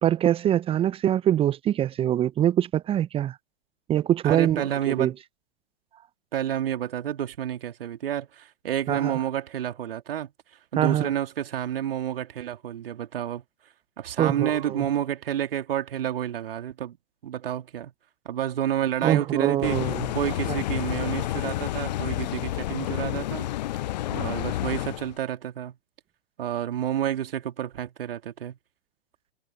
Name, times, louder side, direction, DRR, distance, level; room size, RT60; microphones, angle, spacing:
voice 1, 0.0-3.4 3.9-5.1 8.9-9.2 10.8-11.1 14.2-14.8 19.0-20.0 20.5-20.6, right 11 dB, 15° right, 0.9 m, -24 dB
voice 2, 4.2-5.1 6.3-10.3 10.7-13.4 14.0-17.0 17.2-17.9 18.2-19.8 20.1-23.5 24.1-25.8 26.4-28.6, right 10 dB, 60° right, 3.0 m, -29 dB
sound 1, 19.6-25.1, left 14 dB, 45° left, 0.5 m, -30 dB
figure-of-eight pair, 115°, 32 cm